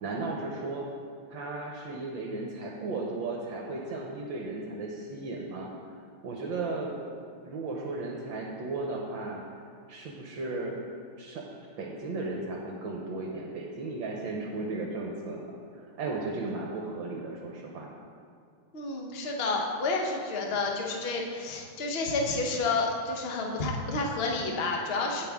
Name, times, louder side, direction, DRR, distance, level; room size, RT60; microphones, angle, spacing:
voice 1, 0.0-0.9 1.3-5.7 6.2-7.1 7.4-9.4 9.9-10.8 11.2-11.4 11.8-15.5 15.7-17.9, right 3 dB, 65° right, 0 dB, 1.4 m, -35 dB
voice 2, 18.7-25.2, left 3 dB, 50° left, 1 dB, 0.7 m, -30 dB
15.5 x 5.5 x 3.6 m, 2.2 s
omnidirectional pair, 2.4 m